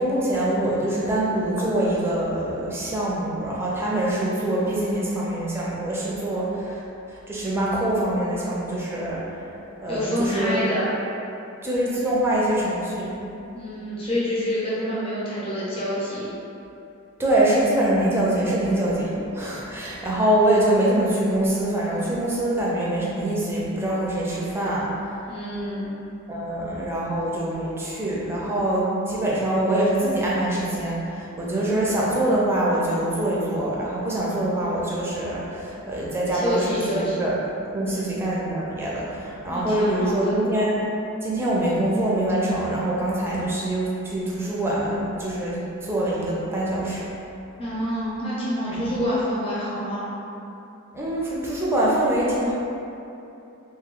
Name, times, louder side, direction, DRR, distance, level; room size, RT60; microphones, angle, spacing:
voice 1, 0.0-6.8 7.1-9.2 9.8-10.6 11.6-13.2 17.2-24.9 26.3-37.3 37.7-40.8 41.2-47.0 49.0-49.1 50.9-52.5, right 1 dB, 10° right, -6 dB, 0.5 m, -24 dB
voice 2, 9.9-10.9 13.5-16.3 25.3-26.0 36.3-37.3 37.9-38.1 39.5-40.4 47.6-50.1, equal, 25° left, -9 dB, 0.7 m, -27 dB
3.2 x 2.2 x 3.6 m, 2.8 s
head